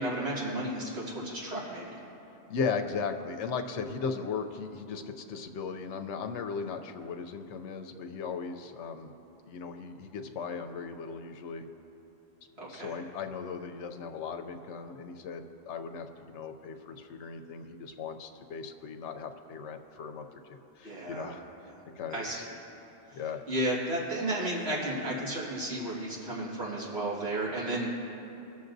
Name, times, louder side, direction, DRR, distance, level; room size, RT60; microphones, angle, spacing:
voice 1, 0.0-2.0 12.6-13.0 20.8-21.3 21.6-21.8 22.1-22.5 23.1-23.2 23.5-27.9, right 1 dB, 60° right, -6 dB, 2.2 m, -33 dB
voice 2, 2.5-9.1 9.4-11.7 12.7-20.3 20.8-21.4 22.0-22.2 23.1-23.4, left 5 dB, 80° left, 6 dB, 0.9 m, -37 dB
21.0 x 7.0 x 2.6 m, 3.0 s
omnidirectional pair, 1.2 m